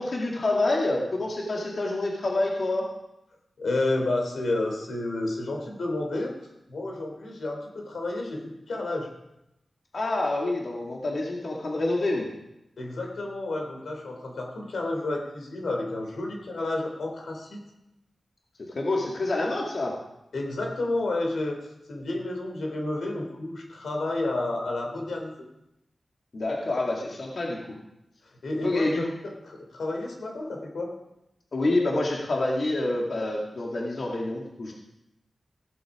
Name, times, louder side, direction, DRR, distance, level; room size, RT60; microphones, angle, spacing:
voice 1, 0.0-2.9 9.9-12.3 18.7-20.0 26.3-27.6 28.6-29.0 31.5-34.7, left 2 dB, 60° left, -2 dB, 2.3 m, -27 dB
voice 2, 3.6-6.3 6.7-9.1 12.8-17.6 20.3-25.3 28.4-30.9, left 2 dB, 90° left, 1 dB, 3.3 m, -31 dB
15.5 x 11.0 x 5.0 m, 0.89 s
wide cardioid pair, 100°, 0 cm